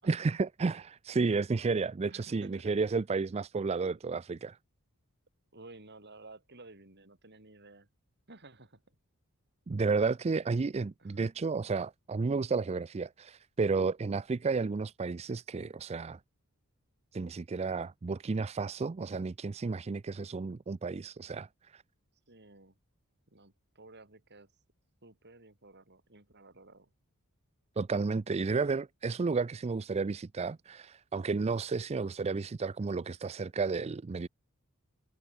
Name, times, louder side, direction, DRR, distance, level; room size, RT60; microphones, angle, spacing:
voice 1, 0.0-4.6 9.7-16.2 17.1-21.5 21.7-21.8 27.8-34.3, right 4 dB, 30° right, 0.4 m, -32 dB
voice 2, 2.1-3.0 3.6-3.7 5.5-7.9 8.3-8.8 11.0-11.2 22.3-22.8 23.3-24.5 25.0-26.9, right 2 dB, 50° right, 6.1 m, -54 dB
head